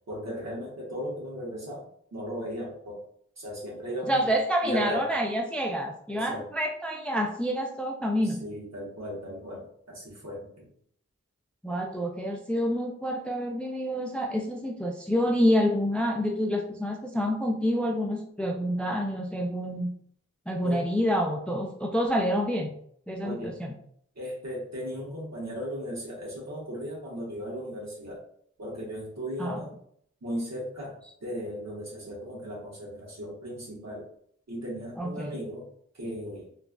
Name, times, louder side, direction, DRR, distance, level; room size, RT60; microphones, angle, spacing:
voice 1, 0.1-1.8 2.1-3.0 3.4-4.3 4.6-5.0 6.1-6.4 8.2-10.7 20.6-20.9 23.2-23.6 24.1-28.2 28.6-29.7 30.2-34.1 34.5-35.7 35.9-36.5, equal, 65° right, -5 dB, 1.2 m, -36 dB
voice 2, 4.1-8.4 11.6-19.9 20.5-22.7 23.1-23.7 29.4-29.6 35.0-35.3, equal, 5° left, 2 dB, 0.4 m, -28 dB
3.0 x 2.4 x 2.2 m, 0.65 s
wide cardioid pair, 45°, 29 cm